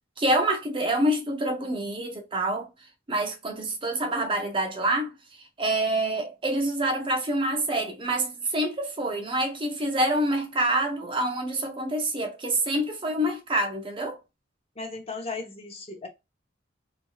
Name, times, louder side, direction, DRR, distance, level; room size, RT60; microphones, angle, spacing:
voice 1, 0.2-2.7 3.1-5.1 5.6-14.2, right 1 dB, 25° right, 0.6 m, -26 dB
voice 2, 14.8-16.1, left 3 dB, 30° left, 0.8 m, -36 dB
3.1 x 2.6 x 2.3 m
head